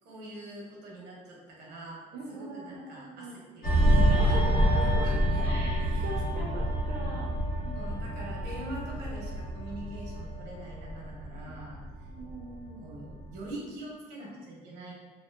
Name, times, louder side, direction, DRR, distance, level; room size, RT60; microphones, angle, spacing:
voice 1, 0.0-4.5 4.8-5.5 5.8-6.1 7.7-11.8 12.8-14.9, right 1 dB, 80° right, -3 dB, 0.8 m, -43 dB
voice 2, 2.1-3.4 4.1-5.1 5.4-7.8 11.4-11.6 12.1-12.9, right 2 dB, 55° right, -3 dB, 0.4 m, -41 dB
sound 1, 3.6-12.7 13.0-13.3, right 1 dB, 55° left, 0.9 m, -27 dB
2.7 x 2.0 x 2.3 m, 1.3 s
cardioid pair, 110°, 17 cm